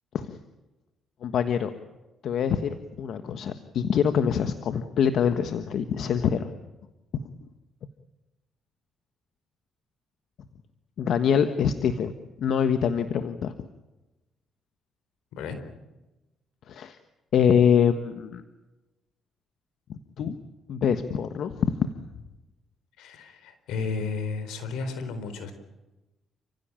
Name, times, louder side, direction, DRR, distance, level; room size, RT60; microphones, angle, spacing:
voice 1, 1.2-1.7 2.2-6.5 11.0-13.5 16.7-17.0 17.3-18.4 19.9-20.4 20.7-21.9, left 7 dB, 70° left, 9 dB, 1.4 m, -25 dB
voice 2, 23.0-25.5, left 4 dB, 90° left, 10 dB, 4.2 m, -33 dB
29.5 x 16.5 x 9.0 m, 1.1 s
cardioid pair, 90°, 0 cm